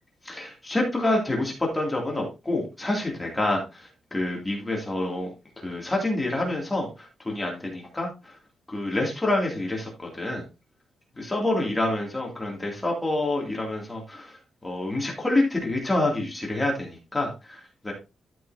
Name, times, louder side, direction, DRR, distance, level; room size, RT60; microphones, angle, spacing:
voice 1, 0.2-5.3 5.6-8.3 8.7-10.4 11.2-14.4 14.6-17.9, left 2 dB, 10° left, 0 dB, 2.4 m, -27 dB
12.5 x 5.6 x 2.7 m, 0.28 s
wide cardioid pair, 150°, 0 cm